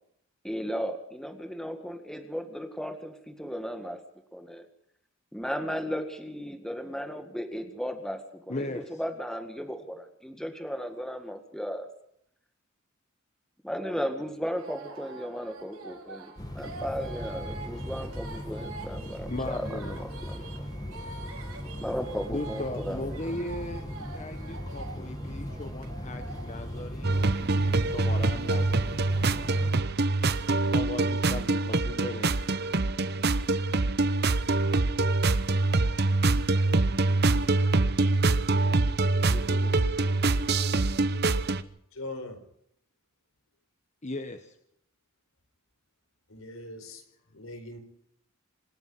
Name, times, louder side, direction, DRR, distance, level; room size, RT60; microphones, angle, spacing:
voice 1, 0.4-4.0 4.3-4.7 5.3-11.9 13.6-20.5 21.8-23.3, equal, 5° left, 1.9 m, -35 dB
voice 2, 8.5-8.8 19.3-20.0 21.0-21.1 22.3-23.8 24.1-27.2 27.8-28.9 30.7-32.3 38.6-38.8 39.3-39.8 44.0-44.5, left 1 dB, 35° left, 1.3 m, -37 dB
sound 1, 14.5-31.4, right 3 dB, 85° right, 6.9 m, -46 dB
sound 2, 16.4-29.7, left 1 dB, 20° left, 1.6 m, -38 dB
sound 3, 27.0-41.6, right 2 dB, 50° right, 1.0 m, -25 dB
voice 3, 41.9-42.4 46.3-47.0 47.3-47.8, left 2 dB, 80° left, 4.6 m, -40 dB
26.5 x 10.5 x 9.7 m
head